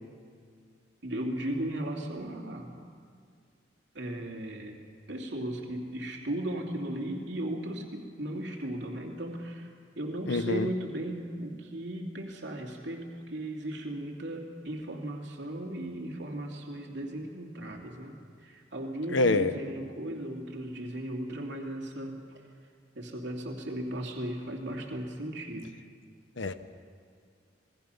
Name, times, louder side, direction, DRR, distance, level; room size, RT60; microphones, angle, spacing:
voice 1, 1.0-2.8 3.9-4.8 5.1-22.5 22.9-25.7, right 1 dB, 70° right, 1 dB, 2.7 m, -36 dB
voice 2, 10.3-10.7 19.1-19.5 26.4-26.5, left 2 dB, 85° left, 11 dB, 1.1 m, -25 dB
27.5 x 20.5 x 5.7 m, 2.1 s
head